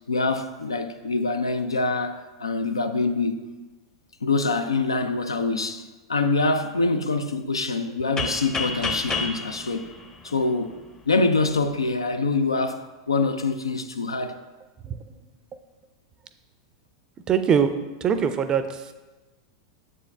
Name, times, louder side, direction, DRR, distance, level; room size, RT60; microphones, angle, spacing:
voice 1, 0.1-3.5 4.2-9.9 10.2-10.7 11.1-14.4, left 3 dB, 90° left, 0.4 m, -25 dB
sound 1, 8.2-10.9, left 3 dB, 25° left, 0.7 m, -30 dB
voice 2, 17.3-17.7 18.0-18.9, right 7 dB, 30° right, 0.4 m, -22 dB
7.1 x 4.6 x 3.3 m
hypercardioid pair, 95°, 2 cm